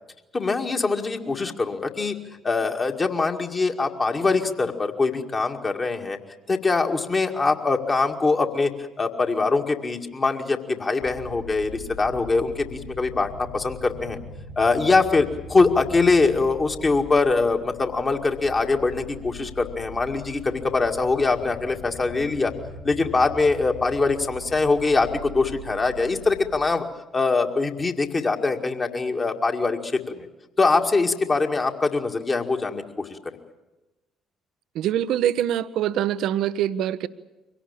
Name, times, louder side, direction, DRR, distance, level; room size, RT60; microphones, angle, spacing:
voice 1, 0.3-2.1 2.4-6.2 6.5-8.7 9.0-14.2 14.6-22.5 22.8-26.8 27.1-30.3 30.6-33.1, left 3 dB, 30° left, 3 dB, 2.1 m, -23 dB
sound 1, 11.0-26.5, equal, 80° left, 3.9 m, -41 dB
voice 2, 34.7-37.1, right 11 dB, 55° right, 15 dB, 0.7 m, -24 dB
24.0 x 17.5 x 8.8 m, 1.1 s
figure-of-eight pair, 45°, 0 cm